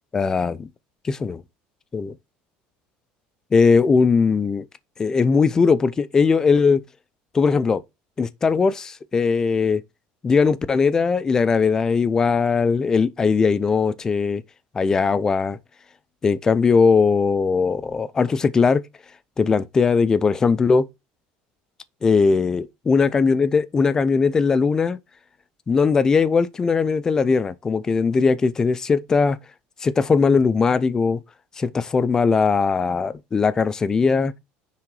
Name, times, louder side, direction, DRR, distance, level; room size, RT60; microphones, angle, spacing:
voice 1, 0.1-0.7 1.0-1.4 1.9-2.2 3.5-4.7 5.0-6.8 7.3-7.8 8.2-9.8 10.2-14.4 14.7-15.6 16.2-18.8 19.4-20.9 22.0-25.0 25.7-29.4 29.8-31.2 31.6-34.3, left 5 dB, 15° left, 0.5 m, -19 dB
9.7 x 3.8 x 4.7 m
cardioid pair, 170°, 4 cm